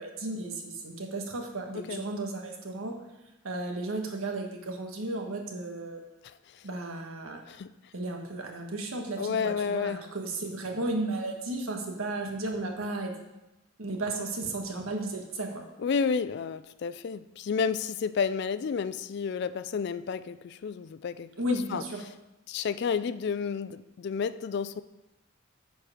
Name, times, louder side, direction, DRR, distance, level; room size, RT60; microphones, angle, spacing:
voice 1, 0.0-3.0 3.4-6.0 6.6-7.4 7.9-13.1 13.8-15.6 21.4-22.0, right 2 dB, 90° right, 2 dB, 1.3 m, -34 dB
voice 2, 1.7-2.1 7.5-7.7 9.2-10.0 15.8-21.8 22.5-24.8, left 6 dB, 55° left, 14 dB, 0.3 m, -31 dB
9.5 x 4.6 x 5.0 m, 0.98 s
head